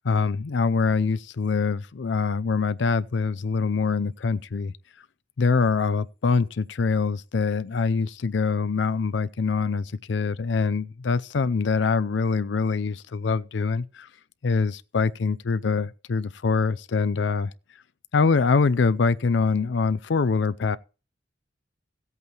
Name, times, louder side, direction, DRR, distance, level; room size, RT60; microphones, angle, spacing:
voice 1, 0.0-4.7 5.4-14.1 14.4-17.5 18.1-20.8, left 4 dB, 65° left, 0.5 m, -24 dB
17.0 x 8.2 x 2.9 m
head